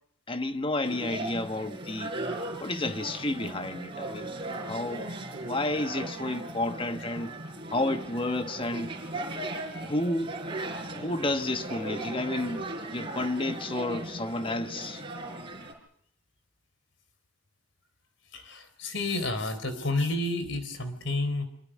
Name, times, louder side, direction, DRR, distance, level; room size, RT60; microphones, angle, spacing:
voice 1, 0.3-2.1 2.6-4.4 4.7-5.1 5.4-7.3 7.7-8.9 9.8-10.3 10.9-15.0, left 2 dB, 25° left, 1.2 m, -31 dB
sound 1, 0.8-15.7, right 2 dB, 25° right, 4.9 m, -37 dB
voice 2, 18.3-21.5, left 2 dB, 65° left, 3.9 m, -30 dB
25.5 x 23.5 x 6.3 m
head